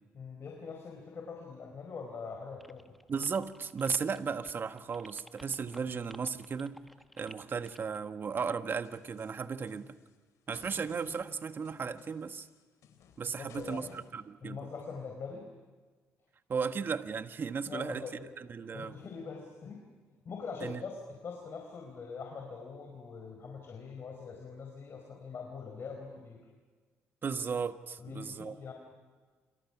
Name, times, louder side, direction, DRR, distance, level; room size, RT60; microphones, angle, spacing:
voice 1, 0.1-2.8 13.2-13.9 14.4-15.5 17.6-18.2 18.7-19.8 20.2-26.4 28.0-28.7, left 5 dB, 50° left, 2 dB, 4.5 m, -43 dB
sound 1, 2.6-8.0, equal, ahead, 1.4 m, -54 dB
voice 2, 3.1-6.8 7.2-10.0 10.5-12.5 13.2-14.6 16.5-18.0 18.4-18.9 20.6-20.8 27.2-28.5, right 5 dB, 45° right, 9 dB, 1.4 m, -35 dB
sound 2, 8.7-10.1 10.5-14.1, left 7 dB, 75° left, 3.4 m, -56 dB
27.5 x 26.0 x 6.0 m, 1.5 s
cardioid pair, 85°, 5 cm